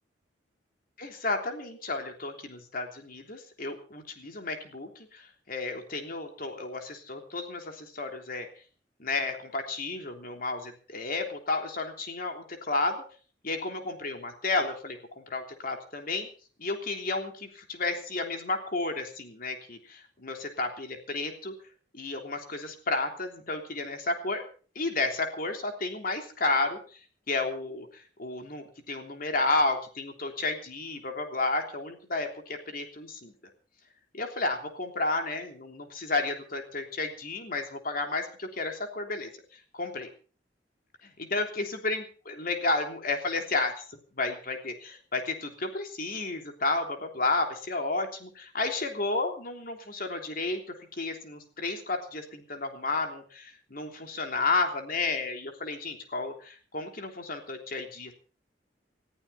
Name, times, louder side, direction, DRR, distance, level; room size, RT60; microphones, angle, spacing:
voice 1, 1.0-8.5 9.0-13.0 13.4-16.3 16.6-21.5 21.9-24.4 24.7-26.8 27.3-33.3 34.1-39.3 39.7-40.1 41.0-58.1, left 3 dB, 50° left, 4 dB, 3.3 m, -32 dB
20.5 x 14.5 x 4.3 m, 0.40 s
head